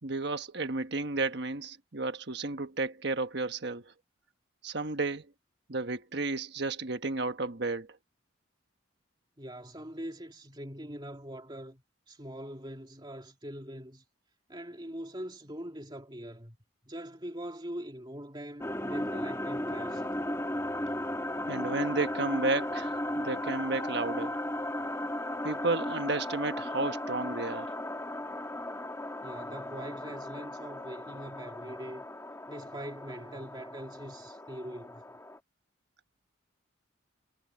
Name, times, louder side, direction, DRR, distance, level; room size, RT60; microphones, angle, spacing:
voice 1, 0.0-3.8 4.6-5.3 5.7-7.9 21.5-24.4 25.4-27.7, right 3 dB, 55° right, 1.4 m, -32 dB
voice 2, 9.4-14.0 14.5-16.6 16.8-20.1 29.2-32.0 32.5-35.0, equal, 25° right, 2.9 m, -42 dB
sound 1, 18.6-35.4, left 1 dB, 15° left, 1.8 m, -36 dB
head